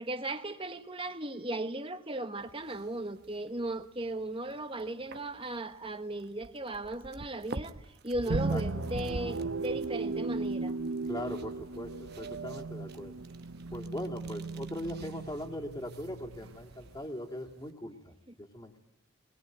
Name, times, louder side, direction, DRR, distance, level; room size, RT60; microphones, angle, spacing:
voice 1, 0.0-10.7 18.3-18.4, right 1 dB, 25° right, 1.3 m, -37 dB
sound 1, 2.4-17.7, right 2 dB, 50° right, 1.0 m, -48 dB
voice 2, 8.3-8.6 11.1-13.2 13.7-18.8, left 1 dB, 20° left, 2.5 m, -40 dB
sound 2, 8.3-17.1, right 3 dB, 80° right, 0.8 m, -36 dB
22.5 x 21.0 x 9.3 m
head